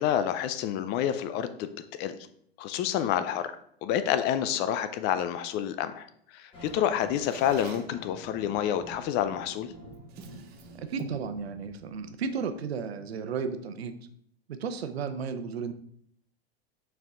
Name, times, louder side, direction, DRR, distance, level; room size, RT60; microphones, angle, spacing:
voice 1, 0.0-1.7 2.0-2.1 2.6-3.5 3.8-6.1 6.3-9.7, left 10 dB, 35° left, 11 dB, 0.5 m, -28 dB
sound 1, 6.5-12.5, equal, 15° left, 1.6 m, -49 dB
Drawer open or close, 6.7-8.0 9.2-9.4 9.8-11.3, right 7 dB, 30° right, 0.7 m, -45 dB
voice 2, 10.8-13.9 14.5-15.7, right 5 dB, 80° right, 9 dB, 0.8 m, -34 dB
5.8 x 4.7 x 3.7 m, 0.66 s
hypercardioid pair, 115°, 31 cm